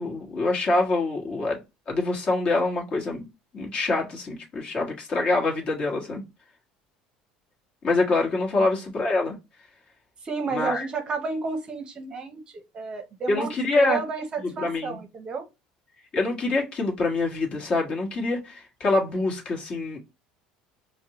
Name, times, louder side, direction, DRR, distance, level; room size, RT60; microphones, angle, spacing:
voice 1, 0.0-1.6 1.9-3.3 3.5-6.2 7.8-9.4 10.5-10.8 13.3-14.0 14.4-15.0 16.1-20.0, left 2 dB, 35° left, 1.3 m, -25 dB
voice 2, 10.2-15.5, right 4 dB, 30° right, 0.7 m, -31 dB
5.1 x 2.1 x 2.9 m
cardioid pair, 130°, 3 cm